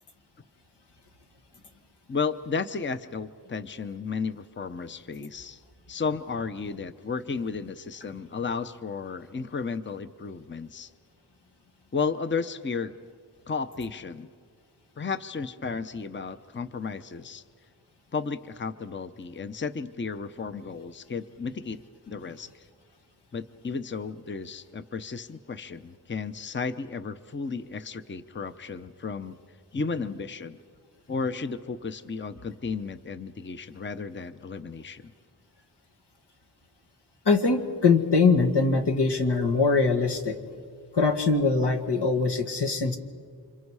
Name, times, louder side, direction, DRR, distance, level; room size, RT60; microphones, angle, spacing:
voice 1, 2.1-5.6 5.9-10.9 11.9-12.9 13.5-14.3 15.0-17.4 18.1-21.8 22.1-22.6 23.3-29.4 29.7-30.6 31.1-35.1, left 5 dB, 30° left, 11 dB, 0.7 m, -33 dB
voice 2, 37.3-40.4 40.9-43.0, left 4 dB, 85° left, 4 dB, 2.0 m, -22 dB
29.5 x 26.5 x 4.8 m, 2.1 s
wide cardioid pair, 90°, 40 cm